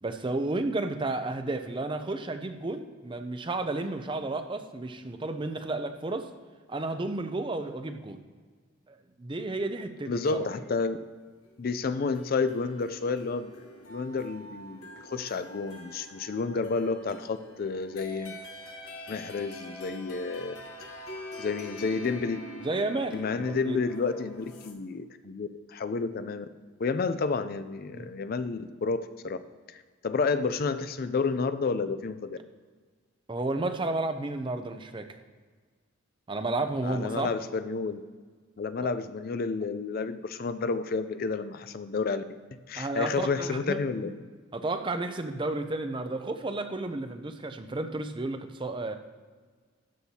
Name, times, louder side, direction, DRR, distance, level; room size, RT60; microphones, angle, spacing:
voice 1, 0.0-6.3 6.7-8.2 8.9-10.5 22.6-23.8 27.9-28.1 33.3-35.2 36.3-37.3 38.8-38.9 42.8-44.1 44.5-49.0, right 2 dB, 25° right, 8 dB, 0.5 m, -32 dB
voice 2, 10.1-11.0 11.6-13.5 13.9-18.4 19.1-20.6 21.4-22.4 23.1-26.5 26.8-29.0 29.2-29.4 29.7-32.4 36.8-38.0 38.6-42.2 42.5-44.1, left 4 dB, 45° left, 11 dB, 0.4 m, -30 dB
sound 1, 11.8-24.7, equal, 80° left, 1.1 m, -45 dB
12.5 x 8.0 x 2.8 m, 1.5 s
head